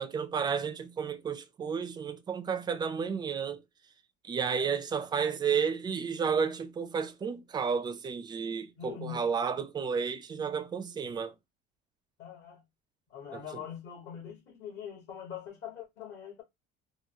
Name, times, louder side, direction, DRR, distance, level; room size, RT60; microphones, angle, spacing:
voice 1, 0.0-3.6 4.2-11.3 13.3-13.6, right 6 dB, 20° right, 0.4 m, -32 dB
voice 2, 8.8-9.2 12.2-12.6 13.1-16.4, left 9 dB, 60° left, 1.7 m, -43 dB
3.7 x 2.2 x 2.8 m
cardioid pair, 145°, 21 cm